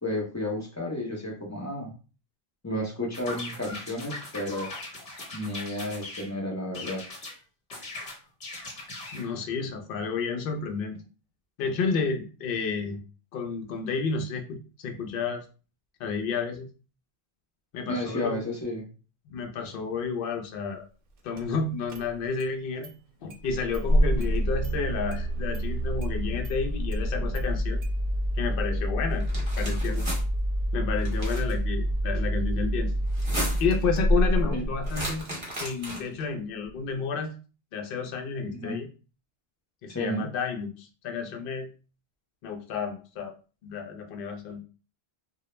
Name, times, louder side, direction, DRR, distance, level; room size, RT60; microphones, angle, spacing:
voice 1, 0.0-1.9 2.6-4.7 5.3-7.0 17.9-18.8 34.5-34.6 38.5-38.7 39.9-40.3, left 1 dB, 25° left, -1 dB, 0.4 m, -32 dB
sound 1, 3.1-6.3 6.7-7.4 7.7-9.3, left 2 dB, 45° left, 1.1 m, -39 dB
voice 2, 9.1-11.0 11.6-13.0 13.3-15.5 16.0-16.7 17.7-18.4 19.3-20.8 21.2-22.9 23.2-27.8 28.4-30.0 30.7-32.9 33.6-35.3 35.6-37.3 37.7-38.9 39.8-41.7 42.4-43.3 43.6-44.6, left 5 dB, 65° left, 4 dB, 0.7 m, -31 dB
Engine starting, 21.4-21.5 21.9-22.5 22.8-22.9 23.3-35.2, equal, 65° right, 0.7 m, -27 dB
sound 2, 29.2-30.2 31.0-31.5 33.1-33.8 34.8-36.2, equal, 30° right, 0.9 m, -35 dB
2.2 x 2.0 x 3.0 m, 0.35 s
omnidirectional pair, 1.0 m